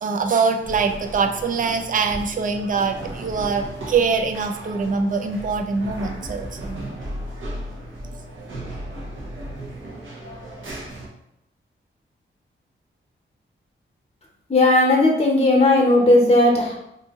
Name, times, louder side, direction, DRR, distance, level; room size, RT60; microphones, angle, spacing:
voice 1, 0.0-6.8, right 5 dB, 40° right, 5 dB, 0.4 m, -23 dB
sound 1, 0.6-11.1, right 1 dB, 70° right, 0.8 m, -35 dB
voice 2, 14.5-16.7, left 2 dB, 30° left, -1 dB, 0.8 m, -16 dB
2.7 x 2.6 x 3.5 m, 0.78 s
wide cardioid pair, 85°, 21 cm